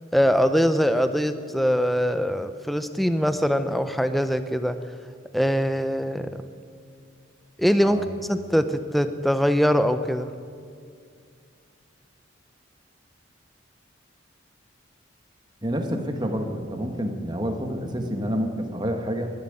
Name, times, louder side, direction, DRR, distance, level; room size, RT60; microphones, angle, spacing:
voice 1, 0.1-4.8 5.3-6.4 7.6-10.3, equal, ahead, 10 dB, 0.5 m, -22 dB
voice 2, 15.6-19.3, equal, 20° right, 4 dB, 1.4 m, -28 dB
12.0 x 11.5 x 9.7 m, 2.3 s
head